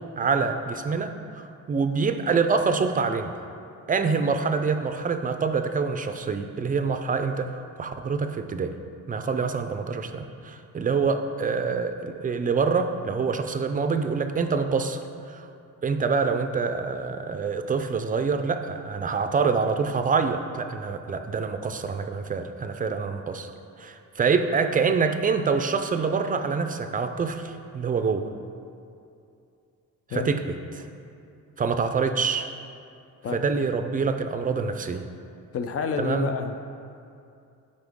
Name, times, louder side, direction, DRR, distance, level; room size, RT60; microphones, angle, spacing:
voice 1, 0.2-1.1 1.7-3.3 3.9-8.8 9.1-15.0 15.3-15.5 15.8-23.5 23.8-28.3 30.1-30.9 31.6-32.5 33.3-35.1 36.0-36.3, right 5 dB, 25° right, 8 dB, 0.4 m, -26 dB
voice 2, 35.5-36.5, left 6 dB, 45° left, 7 dB, 0.6 m, -29 dB
13.0 x 5.3 x 3.6 m, 2.5 s
cardioid pair, 140°, 33 cm